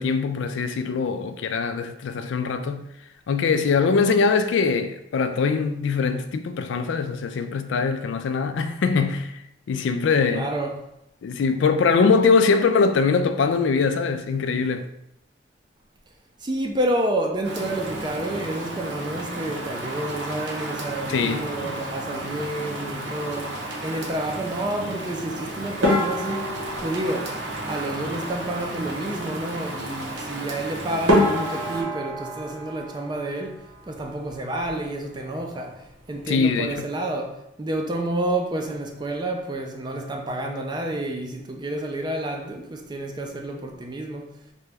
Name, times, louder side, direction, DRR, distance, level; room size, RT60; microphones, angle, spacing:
voice 1, 0.0-2.9 3.3-10.5 11.2-14.9 21.1-21.5 36.3-36.9, left 5 dB, 70° left, 0.3 m, -22 dB
voice 2, 10.3-10.9 16.4-27.4 27.7-33.6 33.9-44.4, right 1 dB, 25° right, 0.4 m, -29 dB
Rain, 17.4-31.8, right 1 dB, 60° right, 0.7 m, -33 dB
sound 1, 25.8-28.3 30.5-30.6 31.1-33.8 34.1-34.9 35.2-35.4 35.7-35.8 36.4-36.7, left 1 dB, 90° right, 1.1 m, -26 dB
3.8 x 2.3 x 3.3 m
head